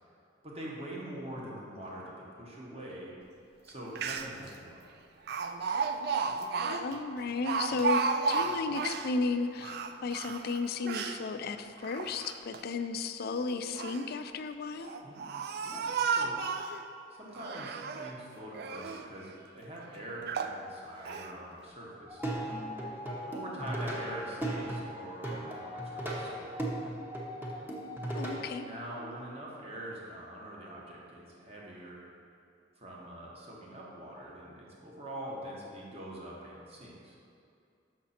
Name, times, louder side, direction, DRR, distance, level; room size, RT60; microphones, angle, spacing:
voice 1, 0.4-3.1 3.6-4.8 15.0-15.3 15.6-16.3 17.1-22.2 23.3-26.7 28.6-32.0 32.8-37.2, right 1 dB, 35° right, -4 dB, 1.3 m, -44 dB
Speech, 3.7-3.8 4.0-4.5 5.3-9.1 9.6-11.2 11.8-12.6 13.5-14.1 14.8-16.8 17.3-18.2 18.5-19.1 19.6-19.7 20.3-20.6 21.1-21.3, right 5 dB, 60° right, 0.4 m, -33 dB
voice 2, 6.7-8.0 8.3-15.0 28.1-28.7, left 4 dB, 55° left, 9 dB, 0.4 m, -34 dB
Plucked string instrument, 22.1-28.5, right 1 dB, 10° right, 1.0 m, -37 dB
7.2 x 6.0 x 4.3 m, 2.5 s
head